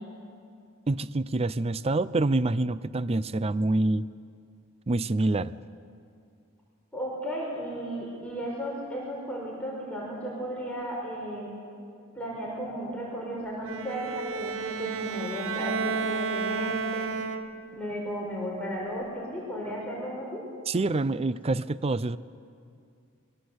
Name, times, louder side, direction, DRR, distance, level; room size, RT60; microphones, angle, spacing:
voice 1, 0.9-4.1 4.9-5.5 20.7-22.2, right 2 dB, 30° right, 16 dB, 0.5 m, -26 dB
voice 2, 6.9-11.5 12.1-17.2 17.7-20.4, equal, 5° left, -4 dB, 5.0 m, -34 dB
Bowed string instrument, 13.6-17.8, right 5 dB, 70° right, 1.0 m, -32 dB
25.0 x 22.0 x 8.0 m, 2.4 s
head